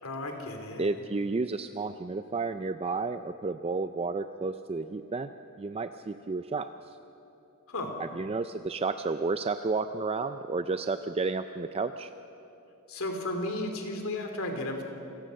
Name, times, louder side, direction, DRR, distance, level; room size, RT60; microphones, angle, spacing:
voice 1, 0.0-0.9 7.7-8.0 12.9-14.8, left 1 dB, 70° left, 4 dB, 3.1 m, -34 dB
voice 2, 0.8-7.0 8.0-12.1, right 3 dB, 25° right, 10 dB, 0.4 m, -32 dB
27.5 x 18.0 x 6.5 m, 2.9 s
head